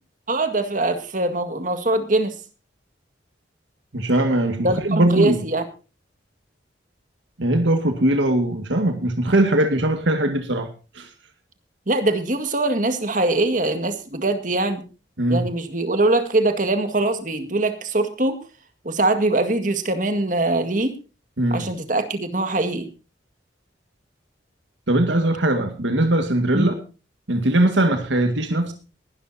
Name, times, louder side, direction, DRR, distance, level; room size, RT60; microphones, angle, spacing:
voice 1, 0.3-2.3 4.6-5.6 11.9-14.8 15.3-18.4 18.8-20.9 21.5-22.9 26.5-26.7, right 2 dB, 45° right, 8 dB, 2.0 m, -22 dB
voice 2, 3.9-5.4 7.4-10.7 11.0-11.1 15.2-15.5 21.4-21.7 24.9-26.7 27.3-28.7, right 1 dB, 85° right, 6 dB, 1.9 m, -20 dB
20.5 x 12.0 x 2.8 m, 0.33 s
head